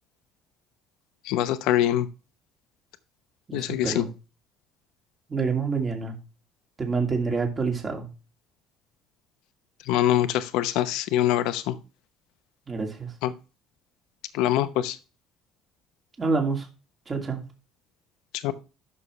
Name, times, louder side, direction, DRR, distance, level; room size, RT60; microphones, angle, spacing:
voice 1, 1.3-2.1 3.5-4.0 9.9-11.7 13.2-13.3 14.3-15.0 18.4-18.5, left 12 dB, 80° left, 11 dB, 0.8 m, -24 dB
voice 2, 3.5-4.1 5.3-6.2 6.8-8.1 12.7-13.1 16.2-16.7 17.1-17.4, right 4 dB, 25° right, 2 dB, 2.5 m, -27 dB
11.0 x 6.4 x 3.2 m, 0.32 s
cardioid pair, 110°, 0 cm